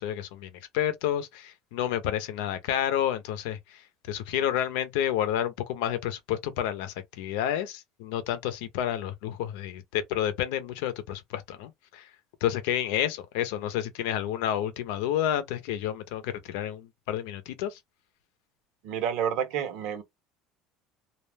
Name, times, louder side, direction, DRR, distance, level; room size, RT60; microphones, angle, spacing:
voice 1, 0.0-3.8 4.1-12.1 12.4-17.8, left 11 dB, 90° left, 0.6 m, -30 dB
voice 2, 18.8-20.0, right 9 dB, 65° right, 0.8 m, -29 dB
2.4 x 2.1 x 3.3 m
cardioid pair, 145°, 0 cm